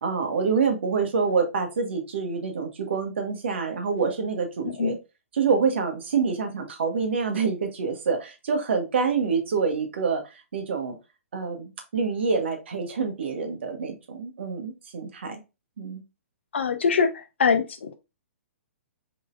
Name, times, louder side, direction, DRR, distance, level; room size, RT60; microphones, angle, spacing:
voice 1, 0.0-5.0 5.3-11.0 11.3-15.4 15.8-16.0, right 5 dB, 55° right, 1.4 m, -26 dB
voice 2, 4.6-5.0 16.5-17.9, left 5 dB, 60° left, 0.8 m, -24 dB
4.8 x 4.1 x 2.4 m
figure-of-eight pair, 120°, 7 cm